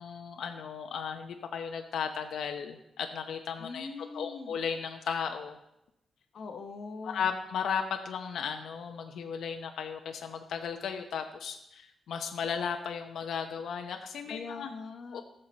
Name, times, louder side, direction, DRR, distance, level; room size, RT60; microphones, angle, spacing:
voice 1, 0.0-3.9 4.1-5.6 7.0-14.7 15.1-15.2, left 7 dB, 85° left, 5 dB, 0.8 m, -35 dB
voice 2, 3.6-4.6 6.3-7.4 14.3-15.2, left 4 dB, 55° left, 4 dB, 1.1 m, -42 dB
18.5 x 6.8 x 4.4 m, 0.84 s
wide cardioid pair, 160°, 0 cm